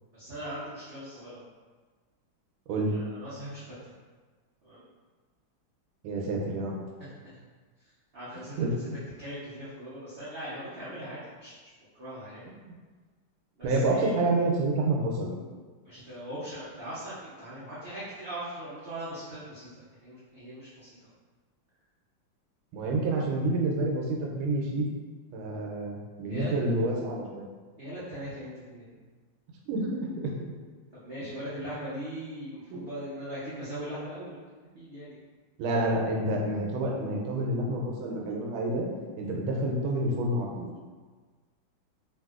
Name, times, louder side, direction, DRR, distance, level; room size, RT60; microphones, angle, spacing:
voice 1, 0.1-1.4 2.9-3.6 4.6-4.8 7.0-7.4 8.1-8.7 9.2-11.5 12.0-12.5 13.6-14.2 15.8-21.0 26.3-26.5 27.8-29.0 31.0-34.4 34.7-35.2, equal, 65° right, -12 dB, 0.5 m, -40 dB
voice 2, 6.0-6.8 8.3-8.8 12.6-12.7 13.6-15.3 22.7-24.9 25.3-27.5 29.7-30.3 32.7-32.8 35.6-38.9 39.2-40.7, right 2 dB, 90° right, -1 dB, 1.4 m, -28 dB
3.3 x 2.6 x 2.3 m, 1.4 s
omnidirectional pair, 2.2 m